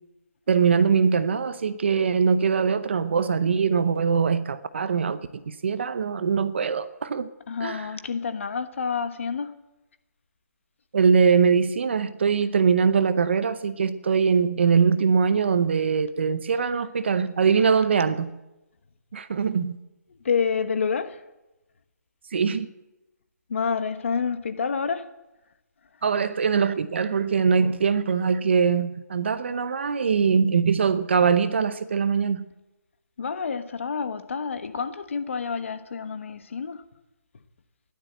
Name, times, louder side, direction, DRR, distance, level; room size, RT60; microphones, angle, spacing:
voice 1, 0.5-7.3 7.6-7.9 10.9-18.3 19.1-19.8 22.3-22.7 26.0-32.4, right 6 dB, 40° right, 0.8 m, -22 dB
voice 2, 7.5-9.5 20.2-21.2 23.5-25.1 33.2-36.8, left 5 dB, 45° left, 1.2 m, -28 dB
14.5 x 12.0 x 7.9 m
hypercardioid pair, 175°, 9 cm